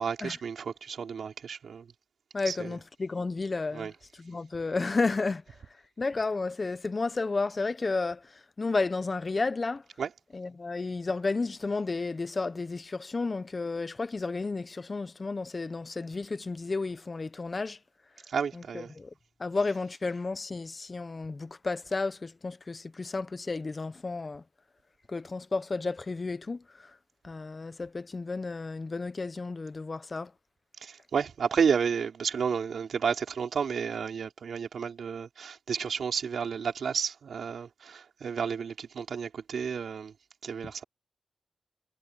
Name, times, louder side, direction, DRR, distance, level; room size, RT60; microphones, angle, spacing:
voice 1, 0.0-1.9 2.4-2.8 3.7-3.9 10.0-10.1 18.3-18.9 30.8-40.1 40.4-40.8, right 6 dB, 85° right, 4.4 m, -31 dB
voice 2, 2.3-3.9 4.2-5.4 6.0-8.2 8.6-9.8 10.3-17.8 18.7-19.1 19.4-24.4 25.1-26.6 27.2-30.3, left 3 dB, 45° left, 1.2 m, -32 dB
cardioid pair, 55°, 0 cm